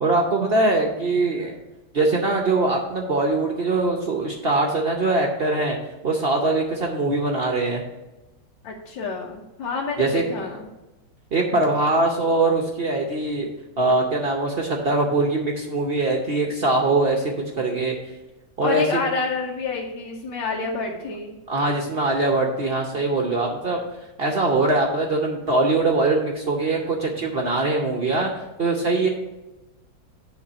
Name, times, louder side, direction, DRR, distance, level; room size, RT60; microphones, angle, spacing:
voice 1, 0.0-1.5 1.9-5.8 6.0-7.8 10.0-10.5 11.3-13.5 13.8-18.0 18.6-19.0 21.5-23.8 24.2-29.1, right 2 dB, 55° right, 1 dB, 0.6 m, -22 dB
voice 2, 8.6-10.7 18.6-21.3, left 4 dB, 85° left, -2 dB, 1.5 m, -28 dB
8.7 x 3.4 x 6.7 m, 1.0 s
omnidirectional pair, 2.0 m